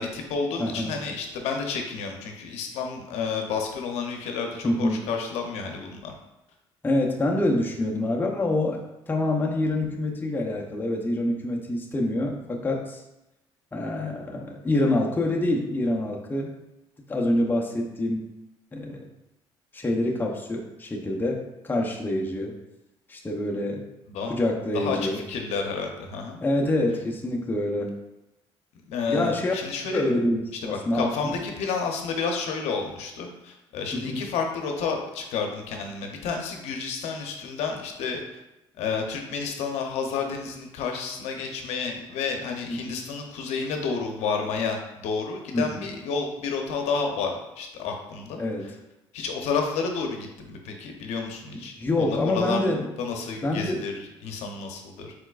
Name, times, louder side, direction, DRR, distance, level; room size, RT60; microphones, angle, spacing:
voice 1, 0.0-6.2 24.1-24.3 24.7-26.4 28.9-30.1 30.6-38.2 38.8-48.4 49.1-52.7 53.0-55.1, left 5 dB, 80° left, 3 dB, 0.7 m, -30 dB
voice 2, 0.6-1.0 4.6-5.0 6.8-8.8 9.1-13.0 13.7-16.5 17.1-18.2 18.7-19.1 19.7-22.6 23.1-23.8 24.3-25.2 26.4-27.9 29.1-29.5 29.9-31.3 33.9-34.2 42.7-42.9 45.5-45.8 48.4-48.7 51.5-52.8 53.4-53.8, left 1 dB, 20° left, 0 dB, 0.7 m, -26 dB
4.5 x 4.2 x 2.4 m, 0.93 s
supercardioid pair, 80°, 11 cm